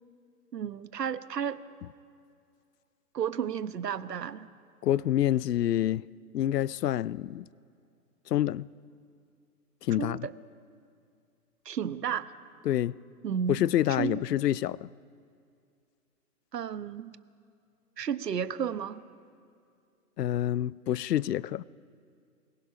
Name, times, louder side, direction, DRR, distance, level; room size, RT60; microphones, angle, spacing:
voice 1, 0.5-1.6 3.1-4.5 10.0-10.3 11.6-12.3 13.2-13.6 14.0-14.2 16.5-17.1 18.0-19.0, right 8 dB, 80° right, 1.2 m, -32 dB
voice 2, 4.8-6.0 6.3-7.4 8.3-8.7 9.8-10.3 12.7-12.9 13.5-14.9 20.2-21.6, left 12 dB, 80° left, 0.6 m, -27 dB
23.5 x 21.5 x 5.8 m
hypercardioid pair, 170°, 48 cm